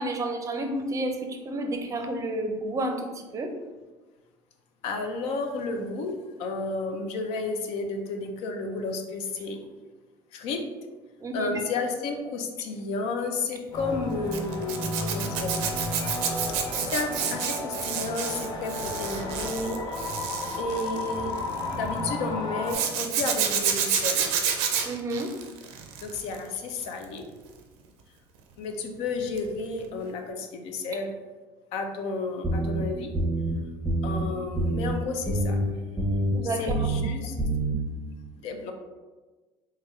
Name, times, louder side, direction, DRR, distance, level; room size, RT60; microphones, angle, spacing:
voice 1, 0.0-3.5 11.2-11.6 24.8-25.3 36.3-37.0, right 1 dB, 30° right, 5 dB, 0.5 m, -31 dB
voice 2, 4.8-9.6 10.3-10.7 11.3-15.6 16.9-19.8 20.6-21.3 21.7-24.3 26.0-27.2 28.6-31.1 31.7-33.1 34.0-35.6 36.4-37.3 38.4-38.7, left 3 dB, 70° left, 5 dB, 0.5 m, -32 dB
sound 1, 13.7-22.7, left 2 dB, 35° left, 0.7 m, -33 dB
Zipper (clothing), 14.3-21.7 22.7-26.3 26.7-27.0 29.4-29.5 29.8-29.9, right 8 dB, 80° right, 0.4 m, -29 dB
sound 2, 32.4-32.8 33.1-33.5 33.9-34.2 34.6-34.9 35.3-35.6 36.0-36.3 36.7-37.0 37.4-37.8, right 1 dB, 5° left, 0.8 m, -26 dB
3.5 x 2.2 x 3.1 m, 1.2 s
supercardioid pair, 90°, 11 cm